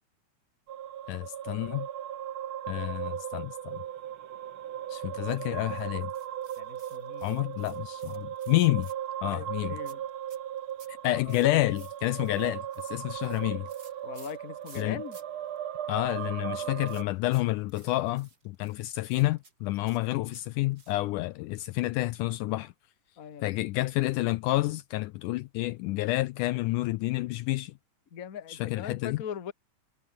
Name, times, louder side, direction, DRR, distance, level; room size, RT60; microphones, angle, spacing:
sound 1, 0.7-17.0, right 10 dB, 70° right, 1.2 m, -37 dB
voice 1, 1.1-1.9 2.7-3.8 4.9-6.1 7.2-8.9 9.2-9.8 10.9-13.7 14.8-15.0 15.9-22.7 23.4-27.7 28.5-29.2, left 18 dB, 80° left, 1.9 m, -29 dB
sound 2, 6.1-9.3 9.8-15.2 15.5-15.6 15.9-21.2, right 4 dB, 25° right, 3.8 m, -56 dB
voice 2, 6.6-7.4 9.2-10.0 11.2-11.4 14.0-15.2 16.4-16.9 17.7-17.9 23.2-23.7 28.1-29.5, left 8 dB, 45° left, 1.1 m, -41 dB
omnidirectional pair, 4.0 m